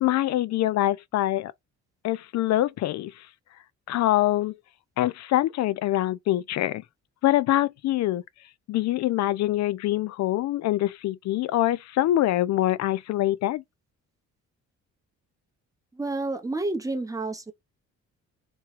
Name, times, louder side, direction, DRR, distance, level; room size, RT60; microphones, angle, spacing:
voice 1, 0.0-1.5 2.0-3.1 3.9-4.6 5.0-6.8 7.2-8.2 8.7-13.6, left 14 dB, 65° left, 0.4 m, -24 dB
voice 2, 16.0-17.5, right 2 dB, 10° right, 0.7 m, -29 dB
3.0 x 2.2 x 3.1 m
cardioid pair, 90°, 30 cm